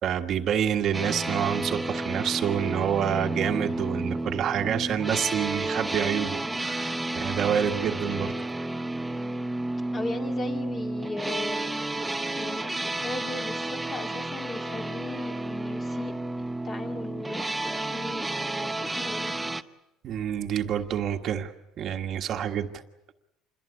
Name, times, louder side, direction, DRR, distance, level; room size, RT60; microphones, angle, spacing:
voice 1, 0.0-8.5 20.0-21.5 21.8-22.8, right 9 dB, 45° right, 5 dB, 1.5 m, -28 dB
sound 1, 0.9-19.6, right 2 dB, 5° right, 0.9 m, -31 dB
voice 2, 9.9-11.8 12.4-16.1 16.6-19.3, left 2 dB, 25° left, 4 dB, 2.3 m, -37 dB
27.0 x 22.0 x 8.3 m, 0.90 s
cardioid pair, 145°, 0 cm